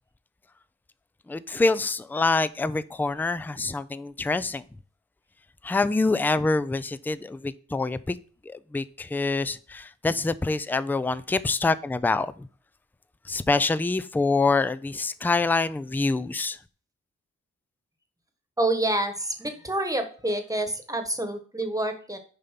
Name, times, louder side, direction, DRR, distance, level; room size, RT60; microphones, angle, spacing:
voice 1, 1.3-4.6 5.6-8.2 8.5-12.5 13.3-16.6, left 3 dB, 5° left, 0.3 m, -26 dB
voice 2, 18.6-22.2, right 1 dB, 10° right, 1.3 m, -27 dB
6.9 x 5.3 x 5.8 m
wide cardioid pair, 135°, 31 cm